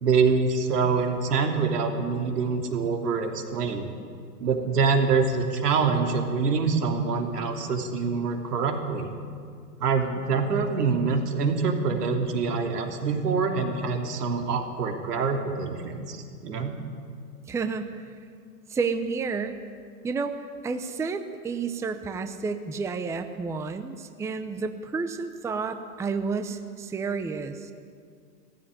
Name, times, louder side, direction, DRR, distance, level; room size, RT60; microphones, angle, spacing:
voice 1, 0.0-3.9 4.4-9.1 9.8-16.2 16.4-16.7, right 5 dB, 90° right, 3 dB, 3.3 m, -25 dB
voice 2, 17.5-18.0 18.7-19.6 20.0-20.3 20.6-27.7, right 4 dB, 5° right, 8 dB, 0.6 m, -30 dB
17.0 x 15.5 x 9.8 m, 2.2 s
hypercardioid pair, 135°, 46 cm